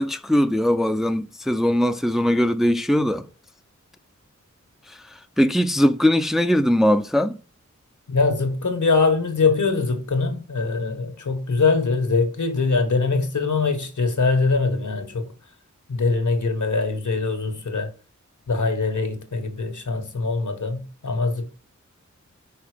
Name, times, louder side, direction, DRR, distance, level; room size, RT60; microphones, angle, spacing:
voice 1, 0.0-3.3 4.9-5.0 5.4-7.4, equal, ahead, 0.5 m, -20 dB
voice 2, 8.1-15.2 15.9-17.9 18.5-21.5, left 4 dB, 85° left, 1.4 m, -22 dB
5.7 x 4.3 x 4.9 m
wide cardioid pair, 70°, 29 cm